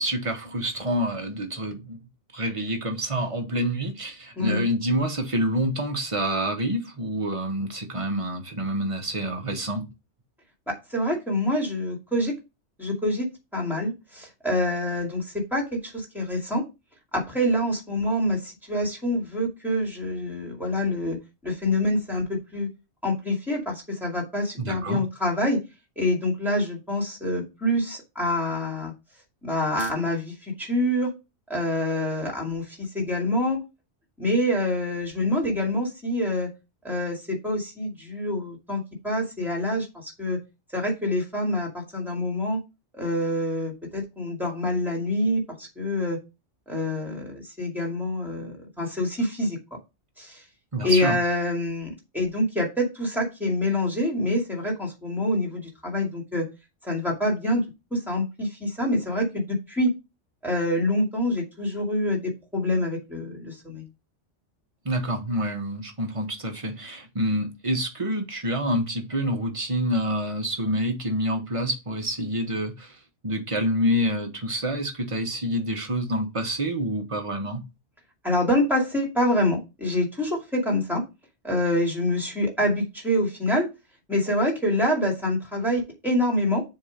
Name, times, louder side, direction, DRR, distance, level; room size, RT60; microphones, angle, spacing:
voice 1, 0.0-2.0 2.3-9.8 24.6-25.0 50.7-51.2 64.8-73.0 73.2-77.6, equal, 30° right, 1.0 m, -27 dB
voice 2, 10.7-12.3 12.8-16.6 17.1-21.2 21.4-22.7 23.0-25.6 26.0-28.9 29.4-31.1 31.5-33.6 34.2-36.5 36.8-40.4 40.7-42.6 42.9-46.2 46.7-49.6 50.2-50.4 50.8-56.5 56.8-57.6 57.9-59.9 60.4-63.9 78.2-81.0 81.4-83.7 84.1-86.6, left 1 dB, ahead, 2.2 m, -26 dB
7.1 x 2.9 x 5.0 m
omnidirectional pair, 1.3 m